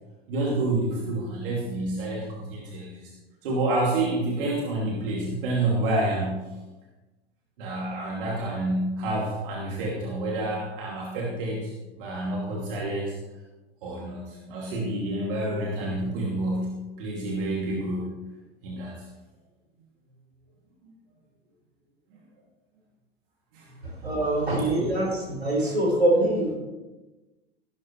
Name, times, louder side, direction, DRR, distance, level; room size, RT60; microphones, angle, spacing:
voice 1, 0.3-3.1 3.4-6.5 7.6-13.1 13.8-18.1 18.6-18.9 23.5-24.1 24.8-24.9 25.6-25.8, right 2 dB, 60° right, -3 dB, 2.7 m, -29 dB
voice 2, 23.8-25.1 25.4-26.5, right 1 dB, 85° right, -3 dB, 4.9 m, -24 dB
16.0 x 12.0 x 3.2 m, 1.1 s
figure-of-eight pair, 85°, 31 cm